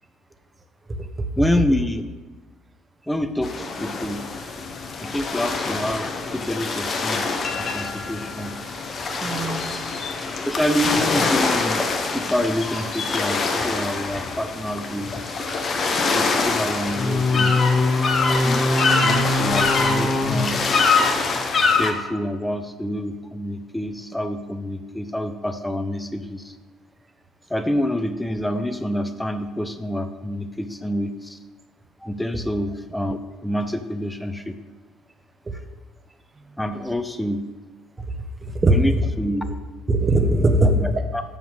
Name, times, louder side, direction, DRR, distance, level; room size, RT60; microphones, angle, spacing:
voice 1, 1.4-2.1 3.1-4.2 5.0-8.5 10.4-11.9 12.1-15.1 16.1-17.6 18.4-20.6 21.8-26.6 27.5-31.4 32.0-34.6 36.6-37.5 38.7-38.9 39.2-39.4 40.6-41.2, left 1 dB, 5° left, 8 dB, 0.6 m, -27 dB
sound 1, 3.4-21.9, left 3 dB, 40° left, 1.0 m, -23 dB
voice 2, 9.1-9.8 38.4-39.1 39.9-40.8, right 1 dB, 25° right, 5 dB, 1.1 m, -20 dB
6.9 x 5.7 x 6.5 m, 1.3 s
figure-of-eight pair, 50°, 0 cm